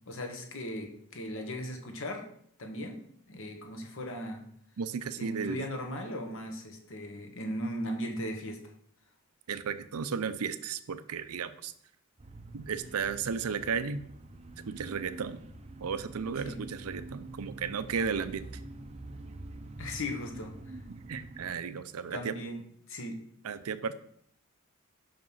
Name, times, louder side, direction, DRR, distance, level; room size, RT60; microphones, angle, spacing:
voice 1, 0.1-2.3 2.6-3.0 3.3-4.5 5.2-8.6 16.4-16.6 19.8-20.5 22.1-22.6 22.9-23.2, equal, 60° left, 4 dB, 1.3 m, -37 dB
voice 2, 4.8-5.6 9.5-11.7 12.5-14.0 14.7-15.4 15.8-18.5 21.1-22.3 23.4-24.0, right 6 dB, 80° right, 12 dB, 0.5 m, -34 dB
sound 1, 12.2-21.5, right 2 dB, 30° right, 0.5 m, -46 dB
5.9 x 5.1 x 5.5 m, 0.65 s
head